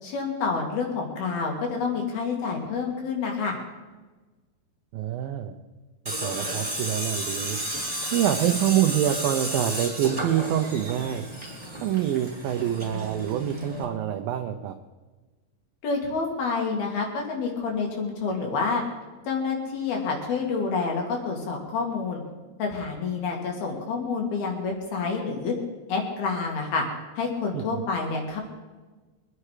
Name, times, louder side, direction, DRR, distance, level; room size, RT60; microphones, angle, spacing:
voice 1, 0.0-3.6 15.8-18.8 19.3-22.2 22.6-25.5 25.9-26.9 27.2-28.4, left 4 dB, 65° left, 0 dB, 3.9 m, -28 dB
voice 2, 4.9-5.5 6.2-7.6 8.1-11.2 11.8-14.8 27.5-27.8, right 11 dB, 75° right, 6 dB, 2.2 m, -26 dB
Tools, 6.1-13.8, equal, 10° right, 4.1 m, -33 dB
24.0 x 10.0 x 4.9 m, 1.3 s
omnidirectional pair, 4.9 m